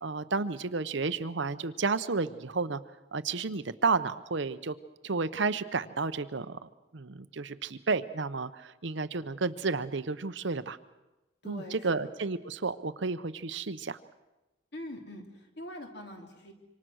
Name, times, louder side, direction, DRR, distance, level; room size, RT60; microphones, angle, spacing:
voice 1, 0.0-2.8 3.1-4.7 5.0-10.8 11.4-14.0, right 4 dB, 65° right, 12 dB, 0.8 m, -32 dB
voice 2, 11.4-12.0 14.7-16.5, left 1 dB, 55° left, 3 dB, 3.2 m, -43 dB
26.5 x 25.0 x 6.4 m, 1.0 s
head